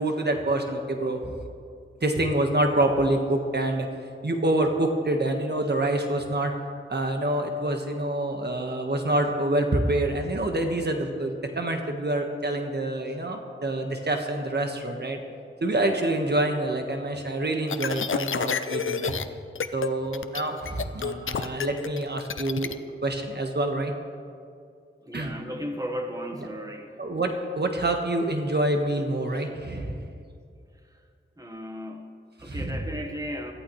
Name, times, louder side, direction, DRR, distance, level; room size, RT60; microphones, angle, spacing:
voice 1, 0.0-1.3 2.0-3.9 4.2-6.5 6.9-15.2 15.6-19.2 19.7-22.7 23.0-23.9 25.1-25.3 27.0-30.1 32.4-32.8, right 1 dB, 55° right, 4 dB, 1.5 m, -26 dB
sound 1, 17.7-19.2 19.6-19.9 20.1-22.7, left 6 dB, 75° left, 0.6 m, -29 dB
voice 2, 25.0-27.0 31.4-33.5, equal, 15° right, 4 dB, 1.3 m, -35 dB
20.5 x 14.0 x 3.2 m, 2.4 s
cardioid pair, 50°, 21 cm